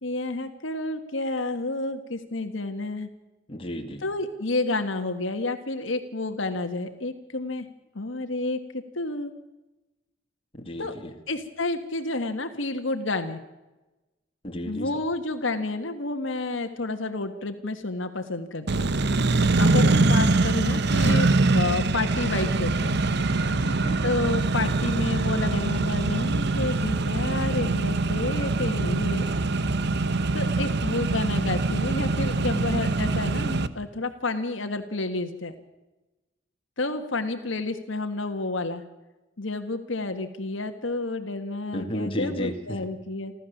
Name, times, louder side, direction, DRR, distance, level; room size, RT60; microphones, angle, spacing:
voice 1, 0.0-3.1 4.0-7.7 7.9-9.3 10.8-10.9 11.3-13.4 14.6-18.9 19.5-23.0 24.0-29.3 30.3-35.5 36.8-38.8 39.4-43.3, left 2 dB, 70° left, 7 dB, 1.6 m, -30 dB
voice 2, 3.5-4.0 10.5-11.1 14.4-14.9 23.5-24.0 41.7-42.8, equal, 30° left, 3 dB, 2.4 m, -33 dB
Accelerating revving vroom, 18.7-33.7, right 3 dB, 60° right, 1.0 m, -23 dB
29.5 x 13.0 x 7.2 m, 1.1 s
head